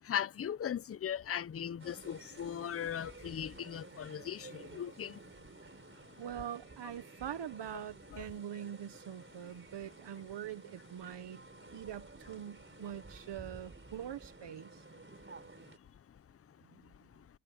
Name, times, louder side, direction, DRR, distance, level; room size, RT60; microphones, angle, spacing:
voice 1, 0.0-6.0 8.1-8.2 15.1-15.2 15.6-16.2 16.5-16.6 16.9-17.3, left 9 dB, 35° left, 0.5 m, -39 dB
sound 1, 1.8-15.8, right 3 dB, 30° right, 4.3 m, -53 dB
voice 2, 6.2-11.4 11.7-14.8 16.7-16.8, right 10 dB, 85° right, 1.0 m, -44 dB
wide cardioid pair, 120°, 41 cm